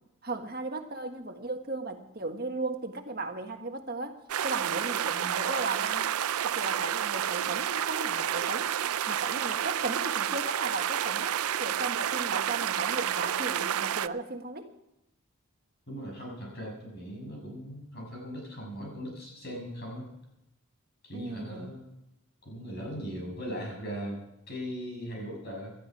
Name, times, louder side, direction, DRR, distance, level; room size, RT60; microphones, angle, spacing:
voice 1, 0.2-6.1 6.4-8.7 9.1-14.7 21.1-21.8, right 2 dB, 45° right, 5 dB, 1.6 m, -36 dB
sound 1, 4.3-14.1, right 10 dB, 85° right, 0.5 m, -30 dB
voice 2, 15.9-20.1 21.0-21.9 22.4-25.8, equal, 50° left, 0 dB, 6.5 m, -39 dB
18.5 x 13.0 x 4.8 m, 0.86 s
head